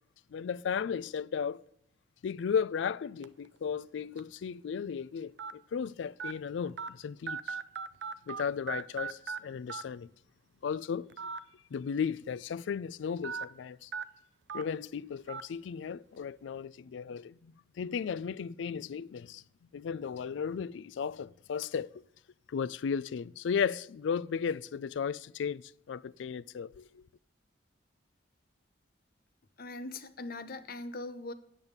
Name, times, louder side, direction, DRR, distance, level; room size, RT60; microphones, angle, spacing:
voice 1, 0.3-1.6 2.2-7.6 8.3-10.1 10.6-11.1 11.7-13.9 14.5-19.4 19.7-21.9 22.5-27.1, left 6 dB, 75° left, 0.3 m, -35 dB
sound 1, 3.2-3.5 4.2-4.3 5.4-5.5 6.2-6.3 6.8-6.9 7.3-8.4 8.7-9.4 9.7-9.8 11.1-11.4 11.8-11.9 13.2-13.4 13.9-14.0 14.5-14.6 15.3-15.4, right 5 dB, 70° right, 0.5 m, -37 dB
voice 2, 29.6-31.3, left 2 dB, 55° left, 0.8 m, -41 dB
8.9 x 7.1 x 8.0 m
head